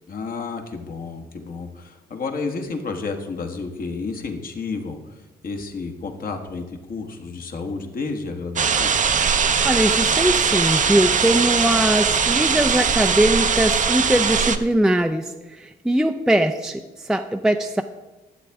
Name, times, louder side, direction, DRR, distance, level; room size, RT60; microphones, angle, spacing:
voice 1, 0.1-8.9, left 4 dB, 55° left, 4 dB, 1.4 m, -31 dB
sound 1, 8.6-14.6, right 6 dB, 45° right, 0.7 m, -20 dB
voice 2, 9.6-17.8, right 1 dB, 5° right, 6 dB, 0.5 m, -21 dB
12.0 x 7.5 x 3.5 m, 1.1 s
supercardioid pair, 55°, 18 cm